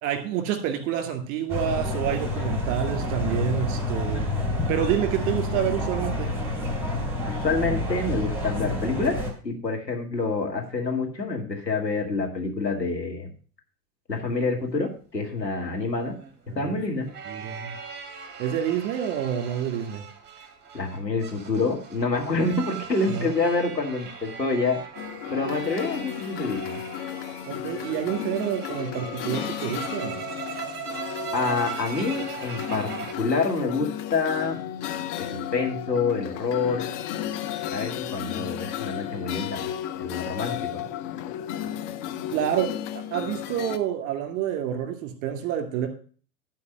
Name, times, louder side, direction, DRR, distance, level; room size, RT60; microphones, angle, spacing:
voice 1, 0.0-4.3 4.7-6.3 16.5-16.7 17.3-17.7 18.4-20.0 23.1-23.3 27.5-30.2 38.4-38.5 42.3-45.9, right 10 dB, 35° right, 7 dB, 2.1 m, -28 dB
sound 1, 1.5-9.3, left 1 dB, 5° right, 3.0 m, -28 dB
voice 2, 7.3-9.2 9.4-13.3 14.1-16.1 16.6-17.1 20.7-24.8 25.3-26.8 31.3-34.6 35.2-37.0 37.7-39.7 40.0-40.9, left 3 dB, 90° left, 0 dB, 2.1 m, -27 dB
sound 2, 15.4-33.1, right 7 dB, 20° right, 1.6 m, -39 dB
sound 3, 25.0-43.8, left 11 dB, 30° left, 0.6 m, -34 dB
11.5 x 4.6 x 6.3 m, 0.41 s
figure-of-eight pair, 90°, 49 cm